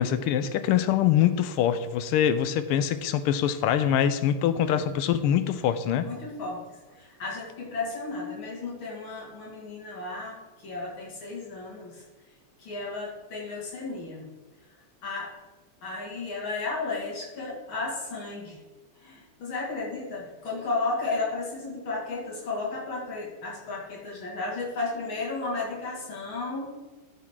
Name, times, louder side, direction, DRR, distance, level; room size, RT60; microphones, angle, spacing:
voice 1, 0.0-6.1, left 10 dB, 85° left, 11 dB, 1.6 m, -24 dB
voice 2, 6.0-6.6 7.0-10.4 10.6-12.0 12.6-14.3 15.0-15.3 15.8-18.6 19.0-26.7, left 3 dB, 65° left, -4 dB, 2.9 m, -33 dB
13.5 x 6.3 x 3.7 m, 1.2 s
omnidirectional pair, 2.4 m